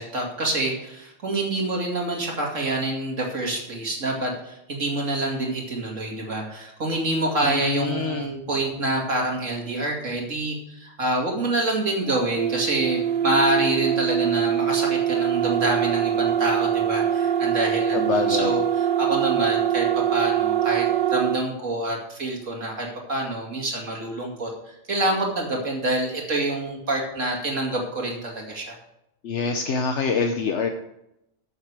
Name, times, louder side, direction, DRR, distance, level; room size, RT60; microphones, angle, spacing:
voice 1, 0.0-28.8, right 2 dB, 85° right, -1 dB, 2.8 m, -27 dB
voice 2, 7.4-8.3 17.9-18.5 29.2-30.7, left 5 dB, 70° left, 5 dB, 1.1 m, -25 dB
sound 1, 12.4-21.4, right 9 dB, 50° right, 0.8 m, -23 dB
14.0 x 6.8 x 4.8 m, 0.83 s
omnidirectional pair, 1.3 m